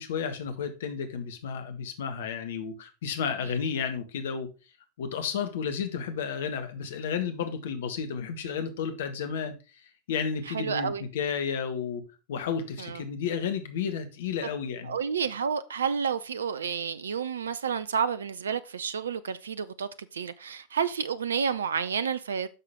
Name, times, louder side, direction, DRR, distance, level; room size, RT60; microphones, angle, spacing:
voice 1, 0.0-4.5 5.0-9.5 10.1-12.0 12.3-14.9, left 6 dB, 55° left, 1.6 m, -32 dB
voice 2, 10.5-11.0 12.8-13.0 14.4-14.5 14.8-22.5, right 6 dB, 70° right, 0.5 m, -30 dB
9.8 x 6.5 x 3.6 m
figure-of-eight pair, 90°, 0 cm